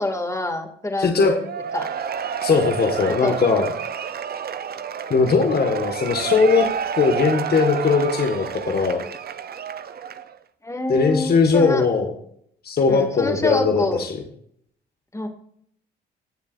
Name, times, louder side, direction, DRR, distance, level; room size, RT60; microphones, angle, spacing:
voice 1, 0.0-1.4 1.7-1.9 3.2-3.6 10.6-11.8 12.9-14.1 15.1-15.3, left 2 dB, 15° left, 3 dB, 2.5 m, -26 dB
voice 2, 1.0-1.3 2.4-3.7 5.1-6.7 7.0-9.0 10.9-12.1 12.6-14.2, left 4 dB, 50° left, 3 dB, 1.9 m, -19 dB
Cheering / Applause / Crowd, 1.4-10.4, right 7 dB, 50° right, 0.8 m, -29 dB
18.0 x 7.2 x 2.7 m, 0.67 s
supercardioid pair, 65°, 21 cm